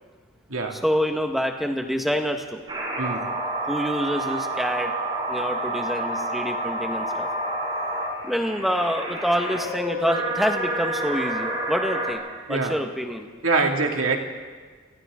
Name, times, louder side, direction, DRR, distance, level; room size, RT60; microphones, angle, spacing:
voice 1, 0.7-2.6 3.7-4.9 5.3-7.3 8.2-13.3, equal, ahead, 3 dB, 1.5 m, -26 dB
sound 1, 2.7-12.1, right 1 dB, 25° right, 5.7 m, -29 dB
voice 2, 3.0-3.3 12.5-12.8 13.4-14.2, right 3 dB, 85° right, 2 dB, 2.5 m, -24 dB
30.0 x 24.0 x 3.8 m, 1.5 s
head